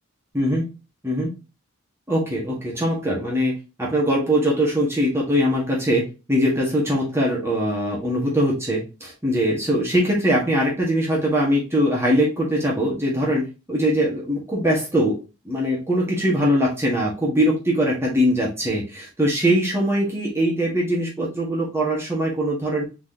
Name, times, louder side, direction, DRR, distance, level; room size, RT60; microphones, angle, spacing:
voice 1, 0.3-0.6 1.0-1.3 2.1-15.2 15.4-22.8, equal, 10° right, -4 dB, 1.6 m, -22 dB
4.6 x 3.9 x 2.8 m, 0.29 s
head